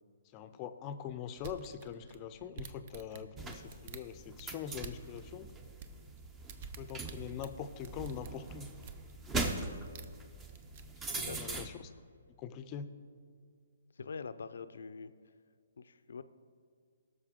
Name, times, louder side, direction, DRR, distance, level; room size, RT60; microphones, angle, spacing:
voice 1, 0.3-5.5 6.8-8.7 11.1-11.8 12.4-12.9, left 8 dB, 25° left, 10 dB, 0.6 m, -43 dB
sound 1, 1.4-5.2 5.6-9.1 9.6-10.2 10.5-10.8, right 6 dB, 40° right, 0.7 m, -49 dB
sound 2, 3.4-11.7, right 2 dB, 15° right, 0.8 m, -41 dB
voice 2, 11.0-11.6 14.0-15.1 15.8-16.2, left 5 dB, 75° left, 12 dB, 0.5 m, -44 dB
17.5 x 6.5 x 3.7 m, 2.2 s
hypercardioid pair, 145°, 0 cm